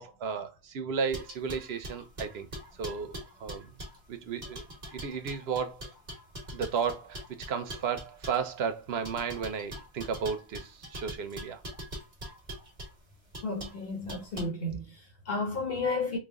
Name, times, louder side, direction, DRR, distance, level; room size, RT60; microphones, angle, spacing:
voice 1, 0.0-2.5 2.8-3.1 3.4-3.8 4.1-4.7 4.9-5.8 6.5-7.2 7.5-11.6, right 6 dB, 80° right, 0.9 m, -33 dB
sound 1, 1.1-4.0 4.4-8.5 9.0-12.9 13.3-13.8 14.1-14.5, equal, 45° right, 1.2 m, -43 dB
voice 2, 13.4-16.2, left 3 dB, 65° left, 1.1 m, -32 dB
3.2 x 2.3 x 3.5 m
omnidirectional pair, 1.1 m